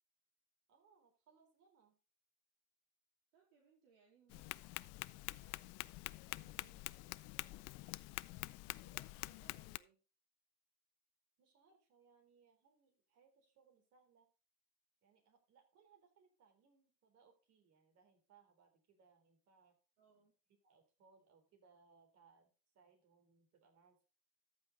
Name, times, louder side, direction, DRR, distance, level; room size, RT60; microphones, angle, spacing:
voice 1, 0.7-2.0 11.4-14.3 15.0-19.8 20.6-22.5 22.7-24.0, right 5 dB, 50° right, 4 dB, 3.9 m, -70 dB
voice 2, 3.3-8.2 8.7-10.0 20.0-20.3, right 6 dB, 75° right, -2 dB, 3.3 m, -72 dB
Tap, 4.3-9.8, left 22 dB, 55° left, 0.5 m, -47 dB
13.5 x 5.9 x 3.9 m, 0.34 s
hypercardioid pair, 95°, 30 cm